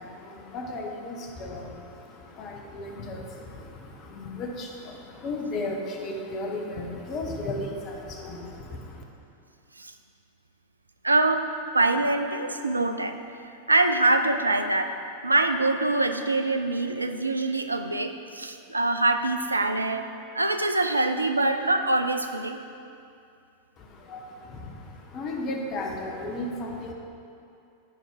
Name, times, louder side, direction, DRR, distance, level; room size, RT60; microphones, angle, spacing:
voice 1, 0.0-9.0 23.8-26.9, left 2 dB, 35° left, 1 dB, 1.1 m, -35 dB
voice 2, 11.0-11.5 11.7-13.2 13.7-14.9 15.2-20.1 20.3-22.6, right 2 dB, 80° right, 7 dB, 0.4 m, -24 dB
9.9 x 4.5 x 4.8 m, 2.5 s
figure-of-eight pair, 90°, 0 cm